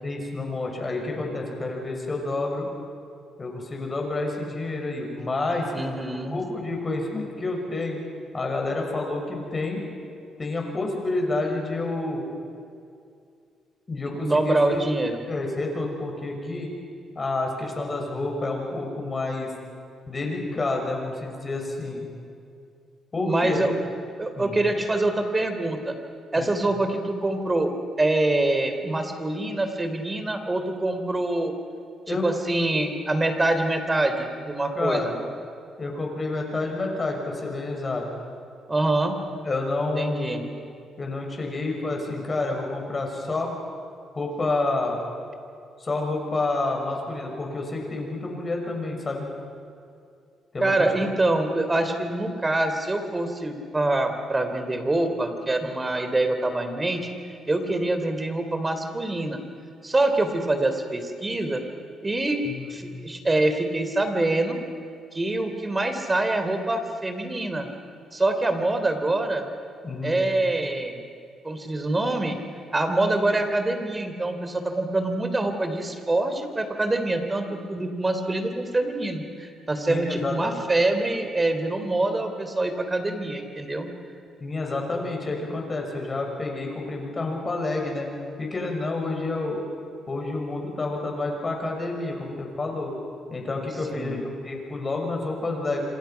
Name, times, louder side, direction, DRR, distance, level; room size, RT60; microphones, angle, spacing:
voice 1, 0.0-2.7 3.4-5.7 6.3-8.0 8.3-9.9 10.4-12.2 13.9-14.8 15.3-16.7 17.1-19.5 20.1-22.1 23.1-23.7 24.3-24.5 26.4-26.5 32.1-32.3 34.7-35.1 35.8-38.1 39.4-40.4 41.0-43.6 44.1-45.0 45.8-49.3 50.5-50.7 62.5-62.8 69.8-70.2 79.9-80.4 84.4-88.1 88.4-89.6 90.1-92.9 93.3-95.8, left 2 dB, 30° left, 1 dB, 6.5 m, -29 dB
voice 2, 5.7-6.4 14.1-15.2 23.2-23.8 24.2-25.9 26.3-27.7 28.0-31.5 32.1-35.1 38.7-39.2 40.0-40.4 50.6-59.4 59.8-61.6 62.0-62.4 62.7-64.6 65.1-67.7 68.1-69.4 70.0-71.0 71.4-72.4 72.7-83.9 93.9-94.2, right 2 dB, 20° right, 7 dB, 3.4 m, -25 dB
28.0 x 26.5 x 5.9 m, 2.4 s
cardioid pair, 90°, 0 cm